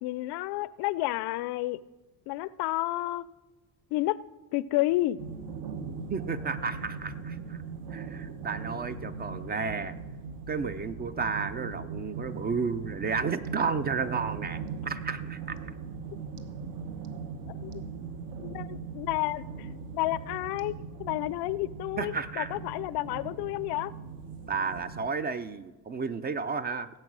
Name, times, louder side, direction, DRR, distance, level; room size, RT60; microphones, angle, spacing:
voice 1, 0.0-1.8 2.3-3.3 3.9-4.2 4.5-5.2 17.5-17.8 18.4-23.9, left 17 dB, 85° left, 19 dB, 0.5 m, -31 dB
sound 1, 5.2-25.1, right 5 dB, 60° right, 1.1 m, -40 dB
voice 2, 6.1-7.6 7.9-10.0 10.5-15.6 22.0-22.6 24.5-26.9, right 5 dB, 25° right, 13 dB, 0.4 m, -32 dB
16.5 x 7.9 x 6.1 m, 1.2 s
cardioid pair, 155°, 38 cm